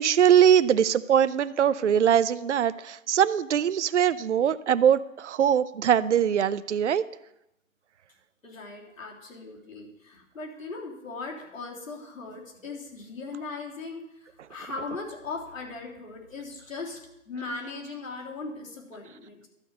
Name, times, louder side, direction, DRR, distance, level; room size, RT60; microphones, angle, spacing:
voice 1, 0.0-7.0, right 9 dB, 60° right, 14 dB, 0.5 m, -22 dB
voice 2, 8.4-17.0 17.2-19.5, left 3 dB, 75° left, -1 dB, 3.5 m, -39 dB
12.0 x 5.3 x 7.7 m, 0.87 s
hypercardioid pair, 180°, 40 cm